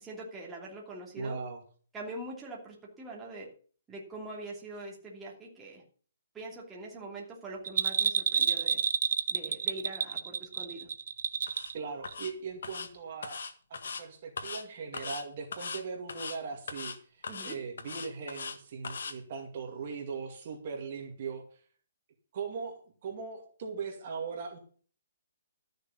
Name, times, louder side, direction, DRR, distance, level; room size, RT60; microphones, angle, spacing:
voice 1, 0.0-1.4 1.9-3.5 3.9-5.8 6.3-8.8 9.3-10.9 17.3-17.6, right 2 dB, 10° right, -3 dB, 2.8 m, -43 dB
voice 2, 1.1-1.6 11.7-13.4 13.7-21.4 22.3-24.6, right 5 dB, 40° right, 3 dB, 2.3 m, -39 dB
Bell, 7.7-11.8 12.1-12.2, right 7 dB, 60° right, 0.8 m, -29 dB
sound 1, 11.5-11.7 12.0-12.3 12.6-12.9 13.2-14.0 14.4-14.6 14.9-15.2 15.5-15.8 16.1-16.4 16.7-17.0 17.2-18.6 18.8-19.1, left 5 dB, 75° left, 1.9 m, -39 dB
13.5 x 6.6 x 7.2 m, 0.43 s
hypercardioid pair, 170°, 0 cm